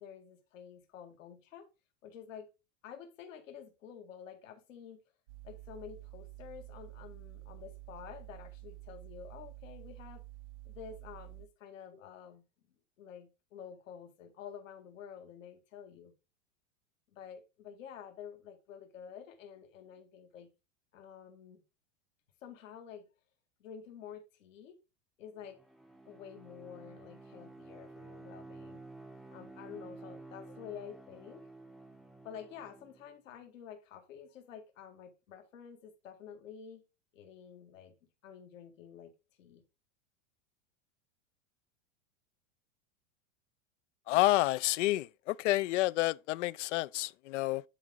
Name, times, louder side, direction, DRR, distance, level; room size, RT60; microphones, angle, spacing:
voice 1, 0.0-1.7 2.0-2.5 2.8-5.0 5.4-10.2 10.7-12.4 13.0-16.1 17.1-20.5 20.9-21.6 22.4-23.1 23.6-24.8 25.2-25.6 26.1-28.8 29.3-31.5 32.2-36.8 37.1-38.0 38.2-39.1 39.4-39.6, left 8 dB, 80° left, 2.1 m, -49 dB
sound 1, 5.3-11.5, right 18 dB, 70° right, 0.8 m, -50 dB
Bowed string instrument, 25.4-33.1, right 2 dB, ahead, 0.6 m, -52 dB
voice 2, 44.1-47.6, left 18 dB, 65° left, 0.5 m, -29 dB
10.5 x 3.9 x 3.7 m
supercardioid pair, 130°, 38 cm